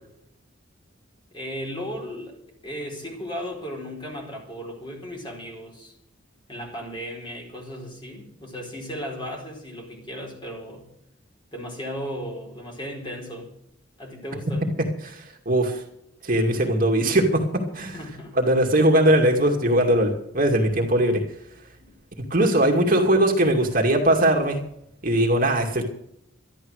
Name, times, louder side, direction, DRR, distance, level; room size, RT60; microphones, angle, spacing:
voice 1, 1.3-2.4 2.6-5.9 6.5-10.9 11.5-13.5 14.0-14.7 17.9-18.4 21.8-22.0 22.6-22.9, equal, 25° left, 4.3 m, -36 dB
voice 2, 15.5-15.8 16.2-18.0 18.4-21.2 22.3-24.6 25.0-25.8, right 1 dB, 45° right, 2.4 m, -20 dB
13.0 x 12.0 x 6.6 m
head